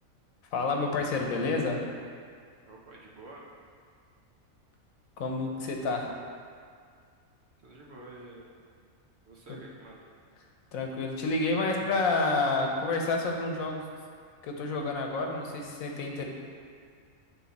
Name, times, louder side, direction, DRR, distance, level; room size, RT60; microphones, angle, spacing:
voice 1, 0.5-1.8 5.2-6.1 9.5-9.6 10.7-13.8 14.4-16.3, left 3 dB, 85° left, 1 dB, 1.3 m, -29 dB
voice 2, 2.6-3.4 7.6-8.5 9.2-10.1, right 2 dB, 55° right, -3 dB, 1.1 m, -49 dB
8.6 x 3.7 x 4.1 m, 2.1 s
omnidirectional pair, 1.4 m